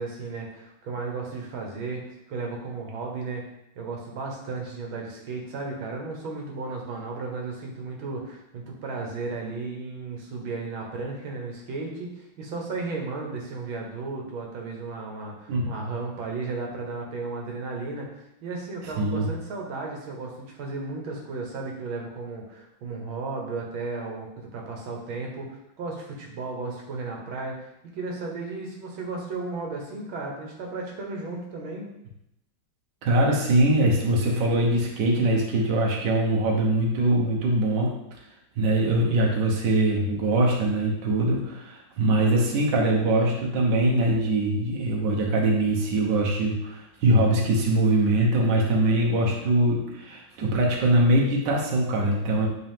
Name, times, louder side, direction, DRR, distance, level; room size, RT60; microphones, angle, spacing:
voice 1, 0.0-2.0 2.3-3.5 3.8-31.9, right 3 dB, 80° right, 0 dB, 1.9 m, -34 dB
voice 2, 19.0-19.3 33.0-37.9 38.6-52.5, right 1 dB, 65° right, -1 dB, 1.6 m, -22 dB
8.3 x 4.0 x 3.5 m, 0.82 s
omnidirectional pair, 2.2 m